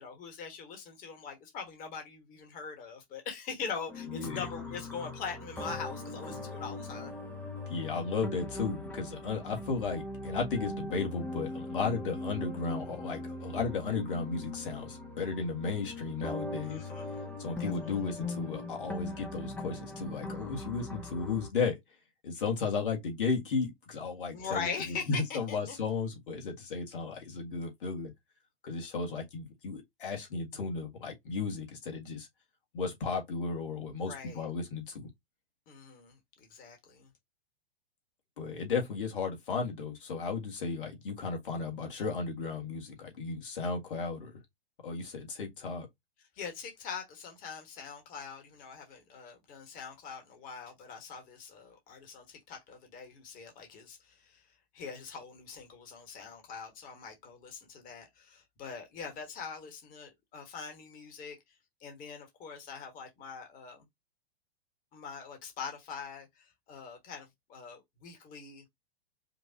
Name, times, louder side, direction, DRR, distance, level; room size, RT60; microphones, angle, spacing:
voice 1, 0.0-7.1 16.6-17.2 17.6-18.0 24.3-25.7 34.0-34.4 35.7-37.1 46.3-54.5 54.7-63.8 64.9-68.6, left 5 dB, 25° left, 1.5 m, -43 dB
sound 1, 3.9-21.5, left 2 dB, 5° left, 0.7 m, -40 dB
voice 2, 4.1-4.5 7.7-16.9 17.4-21.8 22.2-28.1 28.6-32.3 32.7-35.1 38.4-44.3 44.8-45.9, left 4 dB, 55° left, 1.9 m, -34 dB
5.2 x 2.6 x 2.8 m
figure-of-eight pair, 105°, 31 cm